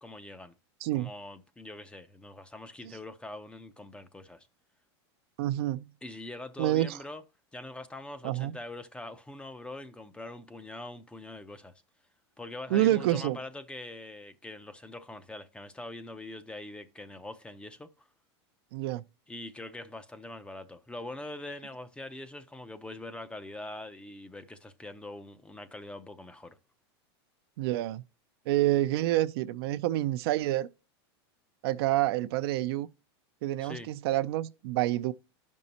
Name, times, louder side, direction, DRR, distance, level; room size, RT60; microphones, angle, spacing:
voice 1, 0.0-0.5 0.9-4.5 6.0-7.2 7.5-11.7 12.4-17.9 19.3-26.6 33.6-33.9, left 2 dB, 5° left, 0.5 m, -43 dB
voice 2, 0.8-1.1 2.8-2.9 5.4-5.9 6.6-7.0 8.2-8.5 12.7-13.4 18.7-19.0 27.6-28.0 28.5-30.7 31.6-32.9 33.4-35.1, right 14 dB, 65° right, 0.5 m, -28 dB
12.0 x 5.4 x 2.8 m
supercardioid pair, 140°, 14 cm